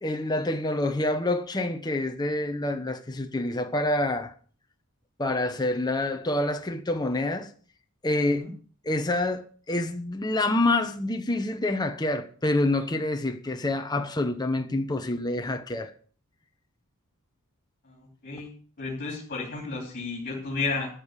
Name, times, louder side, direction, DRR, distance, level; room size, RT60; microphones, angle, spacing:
voice 1, 0.0-4.3 5.2-7.5 8.0-8.5 8.8-15.9, left 2 dB, 20° left, 0.9 m, -27 dB
voice 2, 17.8-18.5 18.8-20.9, left 3 dB, 45° left, 3.3 m, -32 dB
13.0 x 7.5 x 6.7 m
head